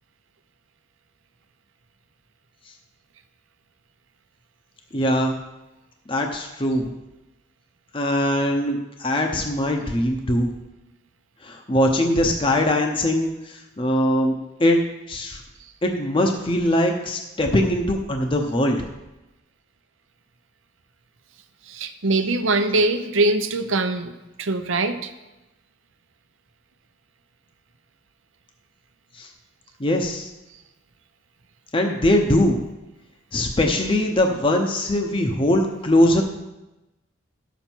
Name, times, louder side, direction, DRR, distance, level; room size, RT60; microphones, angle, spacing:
voice 1, 4.9-5.4 6.1-6.9 7.9-10.5 11.4-14.8 15.1-15.4 15.8-18.9 29.1-29.3 29.8-30.3 31.7-32.6 33.3-36.2, left 1 dB, 25° left, 3 dB, 0.7 m, -21 dB
voice 2, 21.7-24.1 24.4-25.1, right 2 dB, 85° right, 8 dB, 0.8 m, -22 dB
11.0 x 7.1 x 4.5 m, 0.99 s
head